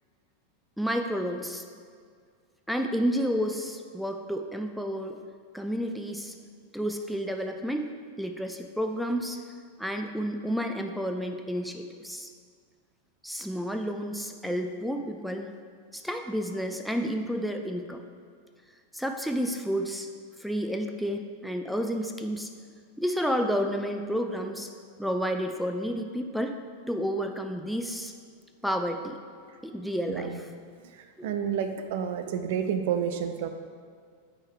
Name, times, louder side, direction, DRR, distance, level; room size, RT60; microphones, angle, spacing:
voice 1, 0.8-1.6 2.7-5.2 5.5-6.3 6.7-7.9 8.2-9.4 9.8-12.3 13.2-15.5 15.9-18.0 18.9-20.1 20.4-22.5 23.0-24.7 25.0-26.6 26.9-28.1 28.6-29.2 29.6-30.3 31.2-31.3, equal, ahead, 5 dB, 0.5 m, -30 dB
voice 2, 30.1-30.4 30.8-33.5, right 8 dB, 50° right, 8 dB, 0.5 m, -30 dB
9.5 x 3.7 x 4.8 m, 2.1 s
figure-of-eight pair, 90°, 0 cm